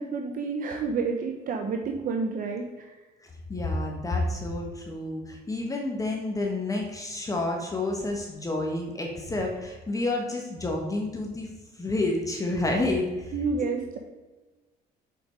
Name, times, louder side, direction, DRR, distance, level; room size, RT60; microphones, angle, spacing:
voice 1, 0.0-3.0 13.3-14.0, right 4 dB, 55° right, 3 dB, 0.8 m, -30 dB
voice 2, 3.5-11.5 11.7-13.3, left 2 dB, 20° left, 1 dB, 1.3 m, -29 dB
7.0 x 5.0 x 4.7 m, 1.2 s
cardioid pair, 110°, 17 cm